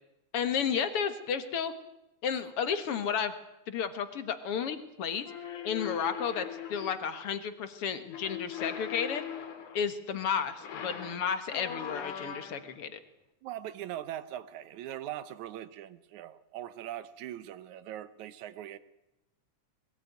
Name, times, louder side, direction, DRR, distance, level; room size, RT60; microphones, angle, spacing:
voice 1, 0.3-1.7 2.2-3.3 3.7-5.3 5.6-9.2 9.7-13.0, left 7 dB, 55° left, 2.1 m, -32 dB
sound 1, 5.2-7.1 8.1-9.9 10.5-12.8, left 8 dB, 80° left, 3.5 m, -40 dB
voice 2, 13.4-18.8, right 12 dB, 75° right, 2.3 m, -41 dB
21.5 x 18.0 x 9.4 m
omnidirectional pair, 3.4 m